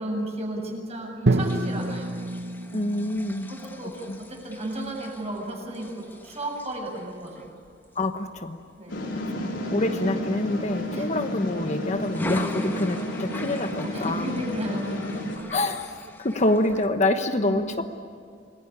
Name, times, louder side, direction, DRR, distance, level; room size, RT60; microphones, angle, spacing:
voice 1, 0.0-2.2 3.2-7.5 8.8-9.1 10.9-11.3 12.5-12.7 13.9-14.8 17.3-17.8, right 1 dB, 35° right, 0 dB, 7.2 m, -34 dB
Drum, 1.3-5.3, right 2 dB, 65° right, 1.3 m, -29 dB
sound 1, 1.4-9.3 9.7-10.0 10.3-11.5 12.0-16.9, left 1 dB, 10° left, 1.8 m, -41 dB
voice 2, 2.7-3.5 3.8-4.2 7.9-8.6 9.1-14.4 15.5-17.8, left 1 dB, 40° left, 7 dB, 1.2 m, -27 dB
sound 2, 8.9-15.4, left 1 dB, 80° left, 4.6 m, -31 dB
28.0 x 21.0 x 10.0 m, 2.3 s
head